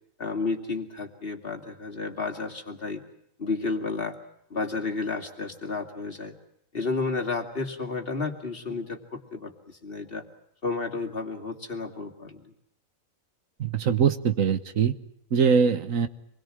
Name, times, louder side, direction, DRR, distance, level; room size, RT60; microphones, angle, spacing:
voice 1, 0.2-3.0 3.4-4.2 4.5-6.4 6.7-10.2 10.6-12.5, left 3 dB, 45° left, 4 dB, 2.5 m, -32 dB
voice 2, 13.6-14.9 15.3-16.1, right 6 dB, 75° right, 11 dB, 1.6 m, -22 dB
26.0 x 21.5 x 7.5 m, 0.75 s
omnidirectional pair, 1.4 m